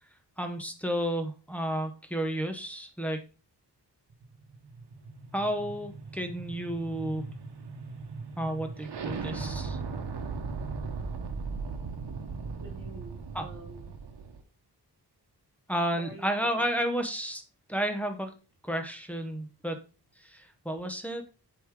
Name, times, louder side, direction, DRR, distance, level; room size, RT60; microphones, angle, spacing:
voice 1, 0.4-3.2 5.3-7.3 8.4-9.8 13.3-13.5 15.7-17.4 17.7-18.3 18.6-19.8 20.2-21.2, equal, 5° left, 6 dB, 0.9 m, -32 dB
sound 1, 4.2-14.4, right 4 dB, 65° right, 1.1 m, -38 dB
voice 2, 12.6-13.9 15.9-16.3 16.6-16.9, right 3 dB, 45° right, 1 dB, 1.8 m, -48 dB
7.9 x 4.9 x 3.6 m, 0.33 s
wide cardioid pair, 165°, 43 cm